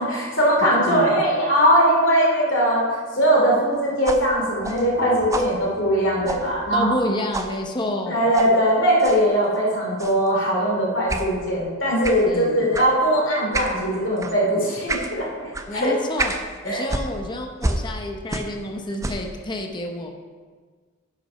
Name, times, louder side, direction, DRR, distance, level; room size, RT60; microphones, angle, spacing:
voice 1, 0.0-2.8 3.2-6.9 8.1-15.9 16.6-16.8, equal, 65° left, -3 dB, 2.7 m, -20 dB
sound 1, 4.0-7.1 7.3-7.6 8.3-8.5 9.0-9.2 10.0-10.3 11.1-11.3 12.0-12.3 12.7-12.9 13.5-13.8 14.2-14.4 14.9-15.1 15.5-15.7 16.2-16.4 16.9-18.6 18.9-19.3, right 2 dB, 15° right, 0.5 m, -29 dB
voice 2, 6.7-8.2 12.2-12.8 15.7-16.3 16.6-20.1, left 1 dB, 25° left, 2 dB, 0.7 m, -29 dB
9.3 x 5.9 x 5.6 m, 1.5 s
head